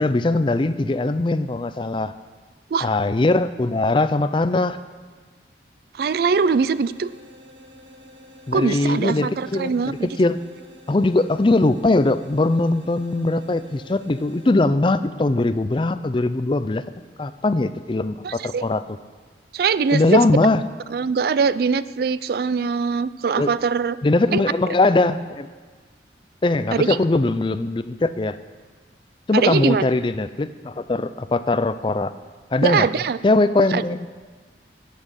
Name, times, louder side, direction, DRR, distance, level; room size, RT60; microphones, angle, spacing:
voice 1, 0.0-2.1 2.8-4.8 8.5-10.4 10.9-16.8 17.2-18.8 19.9-20.6 23.4-23.5 24.0-25.5 26.4-28.4 29.3-32.1 32.5-32.9 33.2-34.1, left 2 dB, 30° left, 13 dB, 0.4 m, -21 dB
voice 2, 6.0-7.1 8.5-10.2 18.2-18.7 19.5-20.2 20.9-24.0 24.3-24.4 26.7-27.0 29.3-29.9 32.6-33.2 33.7-33.8, right 5 dB, 55° right, 16 dB, 0.3 m, -22 dB
sound 1, 6.0-14.5, left 1 dB, 85° right, 2.2 m, -48 dB
11.5 x 8.4 x 7.4 m, 1.4 s
head